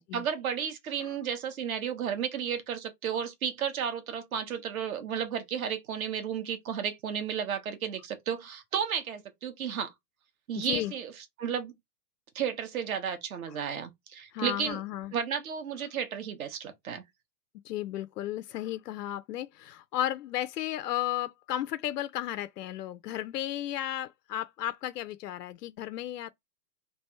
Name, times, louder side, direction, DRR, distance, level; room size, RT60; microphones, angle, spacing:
voice 1, 0.0-9.9 10.5-11.1 11.4-11.7 12.3-14.8 15.1-17.0, right 8 dB, 60° right, 1.2 m, -33 dB
voice 2, 10.5-10.9 13.5-13.6 14.3-15.1 17.6-26.3, left 13 dB, 75° left, 0.5 m, -34 dB
3.4 x 2.4 x 4.3 m
hypercardioid pair, 160°, 47 cm